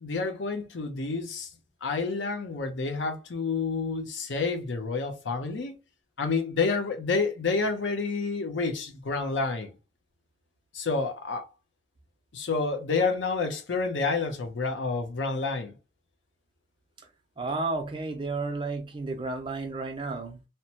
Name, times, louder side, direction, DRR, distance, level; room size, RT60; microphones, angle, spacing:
voice 1, 0.0-1.5 1.8-5.7 6.2-9.7 10.7-11.5 12.3-15.7, left 4 dB, 90° left, 0.6 m, -29 dB
voice 2, 17.4-20.4, right 3 dB, 30° right, 0.6 m, -32 dB
2.8 x 2.2 x 2.8 m
head